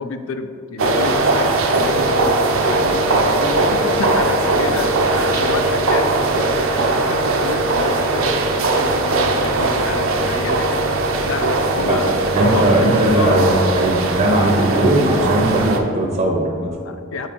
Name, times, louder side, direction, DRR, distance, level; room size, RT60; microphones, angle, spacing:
voice 1, 0.0-10.8 11.2-12.2 12.5-12.7 13.1-13.4 16.8-17.3, left 4 dB, 80° left, 9 dB, 0.4 m, -29 dB
sound 1, 0.8-15.8, right 2 dB, 75° right, 0.6 m, -19 dB
voice 2, 12.3-16.7, right 1 dB, 35° right, 0 dB, 0.6 m, -18 dB
7.4 x 4.3 x 2.9 m, 2.5 s
head